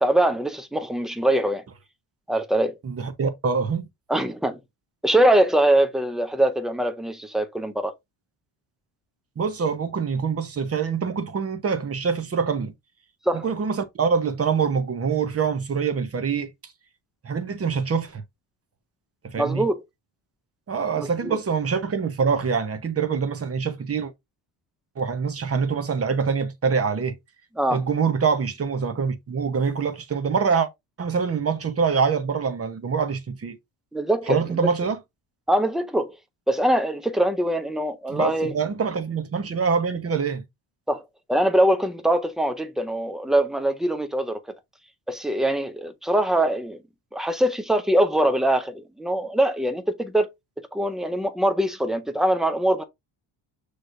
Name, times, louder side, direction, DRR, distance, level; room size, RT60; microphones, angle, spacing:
voice 1, 0.0-1.6 2.3-2.8 4.1-4.6 5.0-7.9 13.3-13.4 19.4-19.8 21.0-21.4 27.6-27.8 33.9-34.6 35.5-36.2 36.5-38.6 40.9-41.0 41.3-44.4 45.1-46.8 47.1-50.3 50.7-52.8, right 1 dB, ahead, 0.5 m, -23 dB
voice 2, 2.8-3.9 9.4-12.7 13.3-16.5 17.2-18.2 19.2-19.6 20.7-24.1 25.0-27.1 27.7-30.7 31.0-33.6 34.3-35.0 38.1-40.4, right 6 dB, 30° right, 0.9 m, -25 dB
6.1 x 3.2 x 2.6 m
cardioid pair, 130°, 50 cm